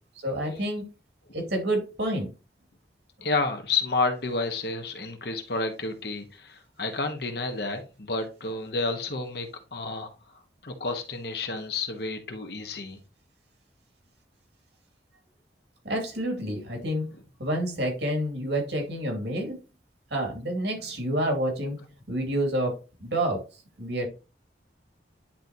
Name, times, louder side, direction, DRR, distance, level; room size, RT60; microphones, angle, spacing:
voice 1, 0.2-0.9 1.3-2.3 15.8-17.1 17.4-19.6 20.1-21.8 22.1-23.4 23.8-24.1, right 1 dB, 75° right, 2.5 m, -28 dB
voice 2, 3.2-10.1 10.6-13.0 17.1-17.2, left 3 dB, 65° left, 1.3 m, -30 dB
10.0 x 4.0 x 2.9 m
head